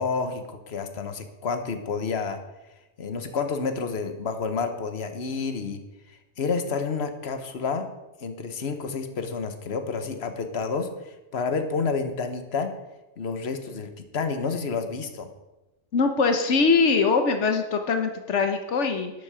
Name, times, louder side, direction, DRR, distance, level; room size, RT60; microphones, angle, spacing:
voice 1, 0.0-2.4 3.0-5.8 6.1-7.9 8.2-12.7 13.2-15.3, left 5 dB, 65° left, 7 dB, 1.4 m, -29 dB
voice 2, 15.9-19.1, left 4 dB, 85° left, 6 dB, 1.3 m, -22 dB
12.0 x 10.5 x 5.0 m, 1.0 s
omnidirectional pair, 1.2 m